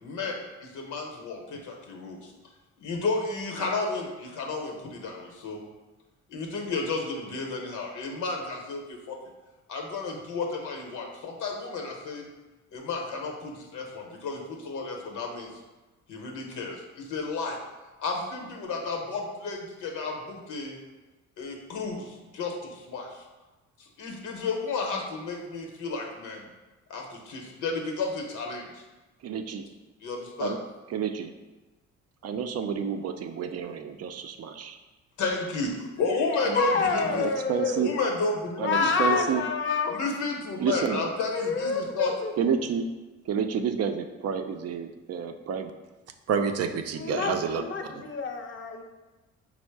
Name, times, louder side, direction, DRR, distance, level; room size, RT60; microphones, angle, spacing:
voice 1, 0.0-2.3 2.8-5.6 6.3-9.2 9.7-12.3 12.7-15.5 16.1-17.6 18.0-20.8 21.4-23.2 23.8-26.5 26.9-28.8 30.0-30.6 35.2-37.3 37.8-39.2 39.9-42.1, left 3 dB, 75° left, 2 dB, 0.9 m, -32 dB
voice 2, 29.2-29.6 30.4-30.6 30.9-31.3 32.2-34.8 36.4-36.5 37.1-37.9 38.6-39.4 40.6-41.1 42.4-42.9 43.3-45.7 46.3-47.6 47.9-48.0, right 7 dB, 55° right, 7 dB, 0.4 m, -29 dB
voice 3, 36.5-38.0 38.6-40.0 41.3-42.3 46.9-48.8, left 4 dB, 40° left, 4 dB, 0.6 m, -28 dB
4.3 x 2.1 x 4.5 m, 1.1 s
cardioid pair, 90°, 30 cm